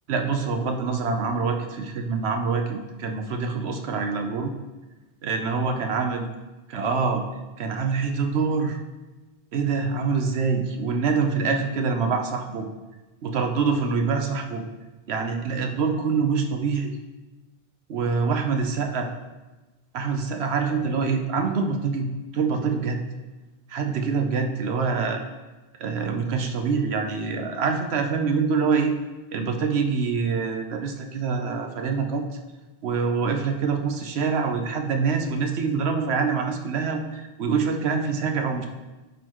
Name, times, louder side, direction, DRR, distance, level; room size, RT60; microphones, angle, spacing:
voice 1, 0.1-4.5 5.2-6.3 6.7-7.2 7.6-8.8 9.5-12.7 13.2-14.6 15.1-16.9 17.9-19.1 19.9-23.0 23.7-25.2 25.8-29.0 29.3-32.2 32.8-38.7, right 5 dB, 70° right, 4 dB, 1.0 m, -25 dB
11.5 x 4.2 x 3.0 m, 1.2 s
omnidirectional pair, 1.2 m